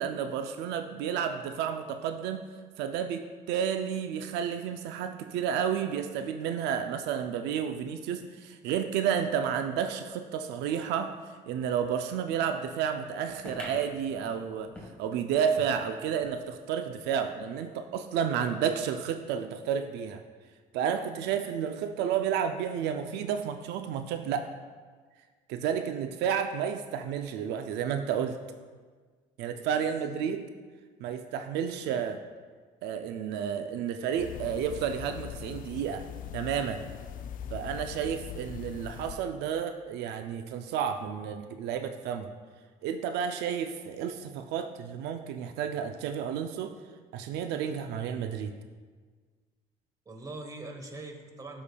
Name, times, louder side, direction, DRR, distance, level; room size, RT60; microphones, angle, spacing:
voice 1, 0.0-2.5 2.8-11.1 11.5-14.7 15.0-20.2 20.7-24.5 25.5-28.4 29.4-30.5 31.0-32.2 32.8-36.0 36.3-36.8 37.5-42.3 42.8-46.7 47.1-48.5, right 8 dB, 85° right, 7 dB, 0.4 m, -31 dB
sound 1, 13.4-16.4 16.8-16.9 17.1-17.2 18.0-18.1, left 1 dB, 5° left, 1.3 m, -47 dB
voice 2, 29.7-30.2 50.1-51.6, right 2 dB, 20° right, 3 dB, 1.1 m, -43 dB
sound 2, 34.2-39.2, left 8 dB, 55° left, 0.4 m, -41 dB
12.5 x 5.0 x 2.2 m, 1.5 s
cardioid pair, 110°, 17 cm